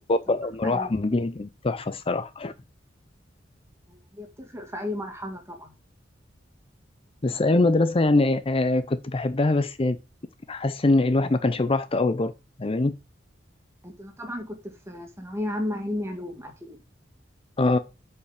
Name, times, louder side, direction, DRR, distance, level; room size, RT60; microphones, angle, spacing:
voice 1, 0.1-2.5 7.2-10.0 10.5-12.3 12.6-12.9 17.6-17.8, left 2 dB, 30° left, 0.5 m, -23 dB
voice 2, 3.9-5.7 13.8-16.8, left 1 dB, 15° right, 2.3 m, -34 dB
8.3 x 5.4 x 6.5 m
head